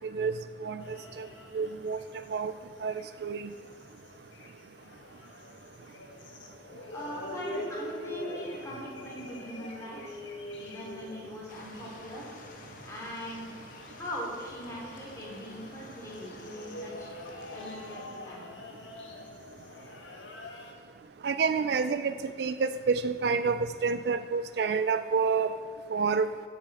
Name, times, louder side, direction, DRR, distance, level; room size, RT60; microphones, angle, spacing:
sound 1, 0.8-20.7, left 1 dB, 80° left, 1.5 m, -45 dB
voice 1, 1.5-2.0 2.3-2.5 2.8-2.9 3.2-3.5 21.2-25.5 25.9-26.3, right 5 dB, 60° right, 12 dB, 0.3 m, -28 dB
voice 2, 6.9-10.2 10.6-12.3 12.8-13.5 13.9-17.1 17.5-18.6, equal, 15° left, -5 dB, 3.0 m, -41 dB
sound 2, 11.5-17.9, left 2 dB, 45° left, 1.0 m, -51 dB
15.5 x 7.4 x 4.2 m, 2.2 s
head